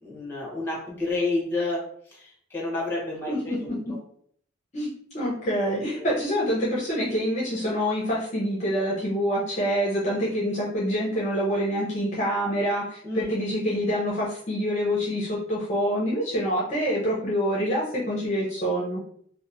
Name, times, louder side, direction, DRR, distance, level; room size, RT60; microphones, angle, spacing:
voice 1, 0.0-3.8 6.0-6.1 13.0-13.2, left 2 dB, 10° left, -4 dB, 1.0 m, -30 dB
voice 2, 3.3-3.8 4.7-19.0, equal, 35° left, -6 dB, 0.6 m, -26 dB
2.9 x 2.1 x 2.6 m, 0.63 s
head